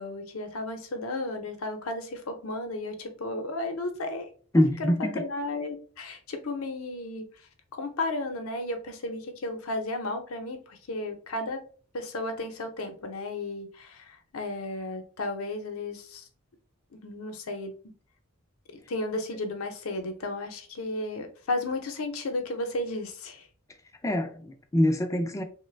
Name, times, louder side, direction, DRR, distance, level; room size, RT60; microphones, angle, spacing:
voice 1, 0.0-4.3 4.8-7.4 7.7-11.6 11.9-16.3 16.9-17.7 18.9-23.5, left 2 dB, 80° left, 0.6 m, -34 dB
voice 2, 4.5-5.2 24.0-25.4, left 1 dB, 15° left, 0.3 m, -25 dB
3.1 x 2.1 x 3.2 m
head